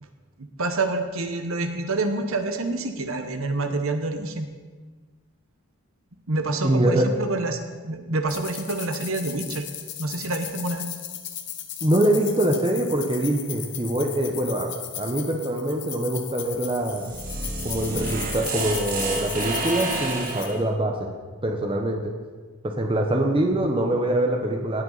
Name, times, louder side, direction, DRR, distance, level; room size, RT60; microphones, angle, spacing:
voice 1, 0.6-4.5 6.3-7.6 7.8-9.6 10.0-10.9, right 2 dB, 70° right, 7 dB, 1.1 m, -27 dB
voice 2, 6.6-7.1 11.8-14.7 15.0-17.1 17.6-21.1 21.4-22.1 22.6-24.8, right 1 dB, 25° right, 2 dB, 0.9 m, -24 dB
sound 1, 8.3-20.5, left 11 dB, 55° left, 1.0 m, -37 dB
sound 2, 16.7-20.6, right 2 dB, 40° right, 1.5 m, -30 dB
17.5 x 7.9 x 4.0 m, 1.4 s
head